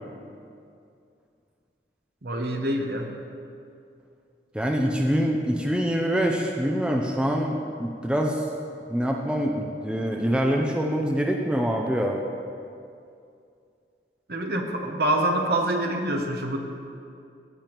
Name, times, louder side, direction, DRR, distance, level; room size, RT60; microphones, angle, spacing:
voice 1, 2.2-3.1 14.3-16.6, right 1 dB, 60° right, 3 dB, 0.9 m, -26 dB
voice 2, 4.5-8.5 8.9-12.2, equal, 5° right, 0 dB, 0.5 m, -25 dB
15.5 x 6.9 x 3.0 m, 2.5 s
head